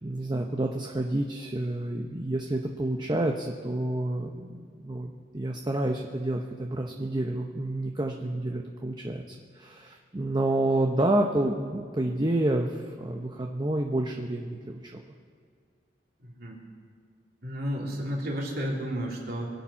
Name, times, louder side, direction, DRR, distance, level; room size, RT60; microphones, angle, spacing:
voice 1, 0.0-15.0, right 1 dB, 25° right, 2 dB, 0.8 m, -29 dB
voice 2, 16.2-16.6 17.4-19.5, equal, 60° right, -2 dB, 3.2 m, -32 dB
25.0 x 8.6 x 5.8 m, 2.2 s
head